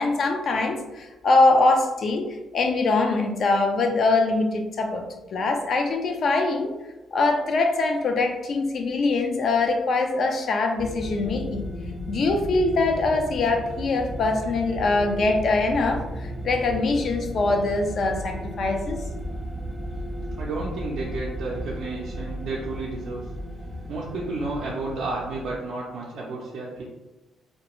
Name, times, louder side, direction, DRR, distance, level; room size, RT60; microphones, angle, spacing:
voice 1, 0.0-2.3 2.5-5.0 5.3-6.7 7.1-11.6 12.1-16.0 16.4-19.0, left 3 dB, 55° left, 4 dB, 0.4 m, -23 dB
sound 1, 10.8-25.5, equal, 10° right, 0.4 m, -35 dB
voice 2, 20.4-23.2 23.9-26.8, right 3 dB, 70° right, -5 dB, 0.4 m, -31 dB
2.3 x 2.2 x 2.9 m, 1.1 s
cardioid pair, 90°, 0 cm